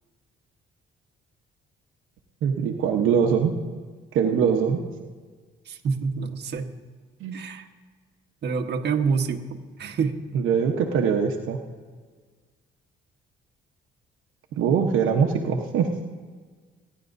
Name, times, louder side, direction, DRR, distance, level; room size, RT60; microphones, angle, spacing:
voice 1, 2.4-3.5 4.1-4.8 7.2-7.4 10.3-11.6 14.5-15.9, right 7 dB, 85° right, 2 dB, 1.0 m, -22 dB
voice 2, 5.7-6.7 7.3-7.6 8.4-10.2, right 5 dB, 55° right, 3 dB, 1.2 m, -27 dB
29.5 x 10.5 x 2.6 m, 1.5 s
cardioid pair, 90°, 20 cm